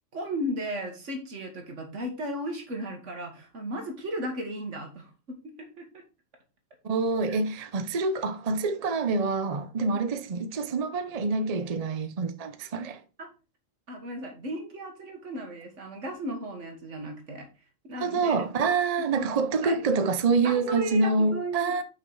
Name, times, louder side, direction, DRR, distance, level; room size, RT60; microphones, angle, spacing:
voice 1, 0.1-6.0 7.3-7.4 13.2-13.3 13.9-17.5 17.8-18.3 19.1-19.3 19.6-19.8 20.4-21.7, equal, 70° right, 1.9 m, -35 dB
voice 2, 6.8-13.0 18.0-21.8, right 4 dB, 40° right, 0.6 m, -26 dB
5.9 x 5.0 x 4.6 m
omnidirectional pair, 1.3 m